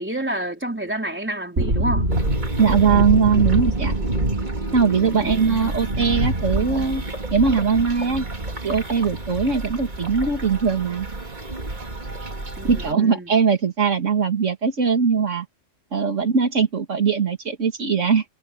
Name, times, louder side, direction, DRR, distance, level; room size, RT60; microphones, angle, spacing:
voice 1, 0.0-2.1 5.1-5.4 12.6-13.3, right 1 dB, 10° right, 3.6 m, -29 dB
sound 1, 1.6-10.4 10.6-10.7 11.0-12.0 12.3-12.4, right 1 dB, 60° right, 4.5 m, -26 dB
sound 2, 2.1-12.9, right 3 dB, 35° right, 2.8 m, -32 dB
voice 2, 2.6-3.9 4.7-7.0 7.3-8.2 8.6-11.1 12.7-15.5 15.9-18.2, right 6 dB, 80° right, 2.3 m, -20 dB
omnidirectional pair, 1.3 m